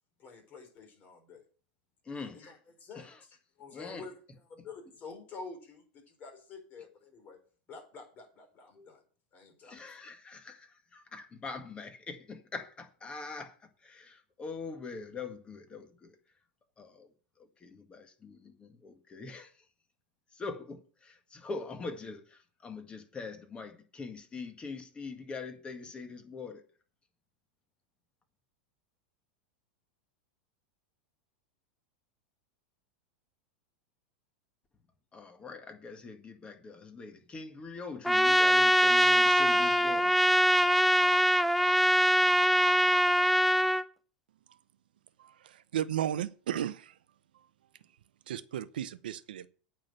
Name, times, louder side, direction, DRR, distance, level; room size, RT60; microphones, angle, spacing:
voice 1, 0.2-1.4 2.3-4.1 4.5-7.4 7.7-9.0 9.3-9.8, left 4 dB, 35° left, 4.5 m, -48 dB
voice 2, 2.0-2.4 2.9-3.2 3.7-4.1 8.7-8.9 9.6-16.2 16.8-17.1 17.4-19.6 20.3-26.6 35.1-40.2, left 4 dB, 20° left, 1.8 m, -43 dB
Trumpet, 38.0-43.8, equal, ahead, 0.5 m, -23 dB
voice 3, 45.2-47.0 48.3-49.5, right 10 dB, 80° right, 0.7 m, -34 dB
8.9 x 5.8 x 7.7 m
hypercardioid pair, 110°, 5 cm